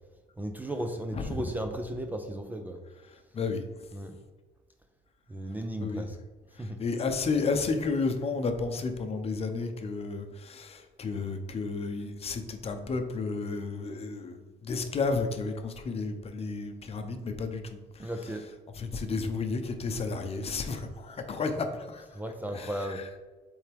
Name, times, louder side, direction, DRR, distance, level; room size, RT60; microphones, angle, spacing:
voice 1, 0.4-2.8 3.9-4.2 5.3-6.2 6.6-6.8 18.0-18.4 22.1-23.0, right 1 dB, 10° right, 5 dB, 0.5 m, -35 dB
voice 2, 1.1-1.4 3.3-3.6 5.8-6.0 6.6-14.4 14.6-17.6 18.0-18.1 18.7-22.1 22.5-23.0, left 4 dB, 35° left, 6 dB, 0.8 m, -32 dB
7.6 x 3.6 x 3.5 m, 1.3 s
cardioid pair, 110°, 17 cm